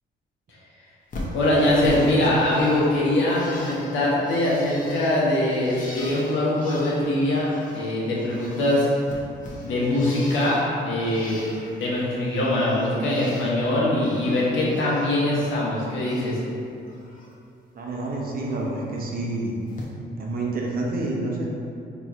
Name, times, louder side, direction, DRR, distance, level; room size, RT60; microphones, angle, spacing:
Bird, 1.1-10.7 11.0-11.9 12.2-13.5 13.8-15.1 15.4-16.5 16.8-17.3 18.6-18.7 19.7-19.8, left 1 dB, 40° left, 0.8 m, -40 dB
voice 1, 1.3-8.9 9.6-11.4 11.8-16.4, left 1 dB, 75° left, -6 dB, 1.0 m, -22 dB
voice 2, 17.7-19.5 20.2-21.6, right 2 dB, 50° right, -2 dB, 0.7 m, -28 dB
4.2 x 3.0 x 2.4 m, 2.5 s
cardioid pair, 90°, 20 cm